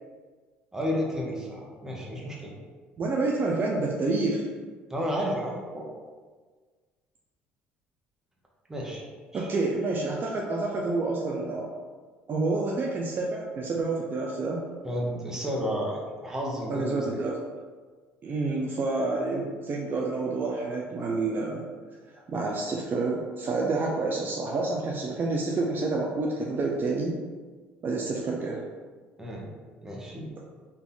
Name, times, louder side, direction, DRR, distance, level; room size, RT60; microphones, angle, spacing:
voice 1, 0.7-2.5 4.9-5.9 8.7-9.0 9.3-9.5 14.8-17.2 29.2-29.5 29.8-30.3, equal, 10° right, -3 dB, 1.2 m, -32 dB
voice 2, 3.0-4.5 9.3-11.7 12.3-14.6 16.7-17.4 18.2-21.6 22.1-27.2 27.8-28.6, right 3 dB, 45° right, -2 dB, 0.6 m, -28 dB
4.0 x 2.8 x 3.8 m, 1.5 s
supercardioid pair, 75°, 5 cm